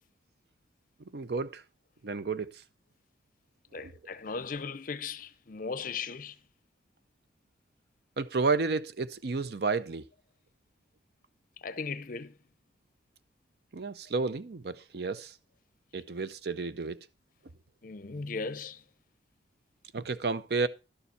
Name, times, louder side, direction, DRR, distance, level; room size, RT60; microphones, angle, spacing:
voice 1, 1.1-1.6 2.0-2.5 3.8-3.9 8.2-10.1 13.7-15.3 15.9-17.0 19.9-20.7, right 4 dB, 60° right, 0.6 m, -31 dB
voice 2, 3.7-6.4 11.6-12.4 17.8-18.8, left 4 dB, 50° left, 0.6 m, -37 dB
11.5 x 7.0 x 4.2 m
head